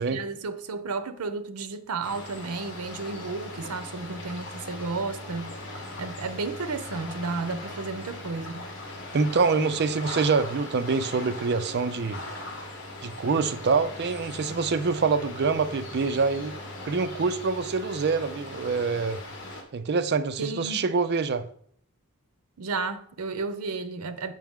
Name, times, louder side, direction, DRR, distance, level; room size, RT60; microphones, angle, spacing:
voice 1, 0.0-5.5 6.0-8.7 20.4-20.9 22.6-24.3, right 4 dB, 80° right, 0.7 m, -33 dB
sound 1, 2.0-19.6, left 2 dB, 55° left, 1.5 m, -39 dB
voice 2, 9.1-12.2 13.0-16.5 16.8-19.2 19.7-21.4, right 4 dB, 50° right, 0.5 m, -25 dB
7.4 x 5.7 x 3.6 m
head